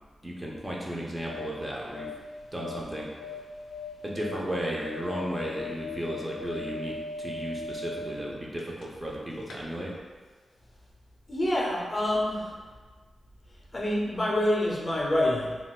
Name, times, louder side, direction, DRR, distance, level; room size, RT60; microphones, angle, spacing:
voice 1, 0.2-2.1 2.5-3.1 4.0-10.0, right 1 dB, 20° right, -3 dB, 0.6 m, -34 dB
sound 1, 1.0-9.1 9.4-9.6, left 3 dB, 80° left, 0.4 m, -40 dB
voice 2, 11.3-12.5 13.7-15.6, left 1 dB, 30° left, -3 dB, 0.6 m, -26 dB
3.8 x 2.3 x 2.4 m, 1.4 s
cardioid pair, 70°, 0 cm